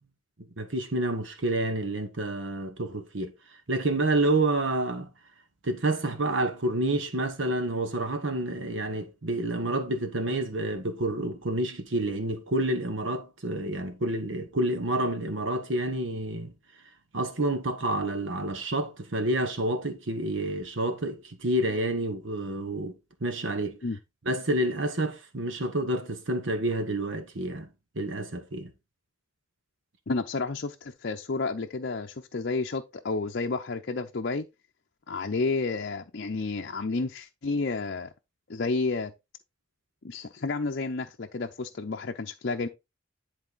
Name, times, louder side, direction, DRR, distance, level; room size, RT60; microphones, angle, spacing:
voice 1, 0.6-5.1 5.6-16.5 17.1-22.9 23.2-23.8 24.2-27.7 27.9-28.7, right 1 dB, 70° right, 1.2 m, -29 dB
voice 2, 30.1-34.5 35.1-38.1 38.5-39.1 40.0-42.7, left 3 dB, 55° left, 0.6 m, -31 dB
11.0 x 4.0 x 4.0 m
head